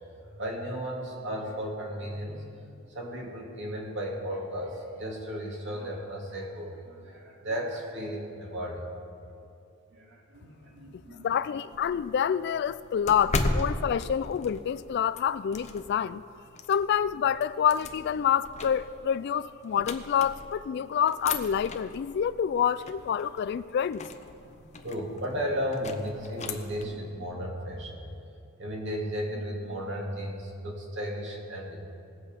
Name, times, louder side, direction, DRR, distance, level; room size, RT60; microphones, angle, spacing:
voice 1, 0.2-2.5 2.9-8.9 9.9-11.3 13.3-13.4 13.8-13.9 20.8-20.9 24.5-28.0 28.6-31.8, equal, 60° right, -1 dB, 2.4 m, -35 dB
voice 2, 11.2-16.2 16.7-24.0, left 8 dB, 55° left, 17 dB, 0.3 m, -27 dB
sound 1, 11.6-16.1 16.6-20.7 21.1-26.9, left 2 dB, 35° left, 0.7 m, -37 dB
19.0 x 7.5 x 5.2 m, 2.5 s
head